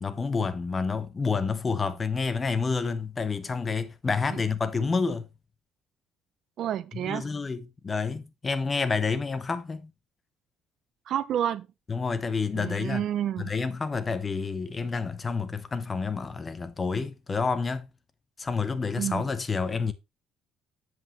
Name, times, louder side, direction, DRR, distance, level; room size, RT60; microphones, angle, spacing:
voice 1, 0.0-5.3 6.9-9.9 11.9-13.0 13.4-17.9 18.4-19.9, left 4 dB, 25° left, 0.9 m, -29 dB
voice 2, 6.6-7.3 11.1-11.7 12.5-13.5 19.0-19.2, right 10 dB, 55° right, 0.6 m, -29 dB
7.8 x 7.7 x 3.0 m
cardioid pair, 135°, 0 cm